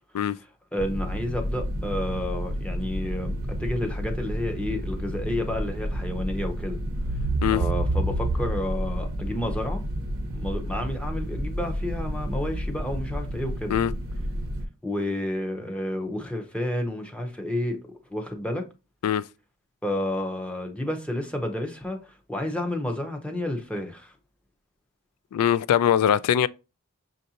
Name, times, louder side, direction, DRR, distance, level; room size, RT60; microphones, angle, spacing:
voice 1, 0.7-6.8 7.5-9.8 10.3-13.7 14.8-17.8 18.1-18.7 19.8-24.1, left 1 dB, 5° left, 0.7 m, -30 dB
sound 1, 0.8-14.6, right 1 dB, 65° right, 0.7 m, -30 dB
voice 2, 25.3-26.5, left 9 dB, 90° left, 0.3 m, -21 dB
6.3 x 2.6 x 2.8 m
head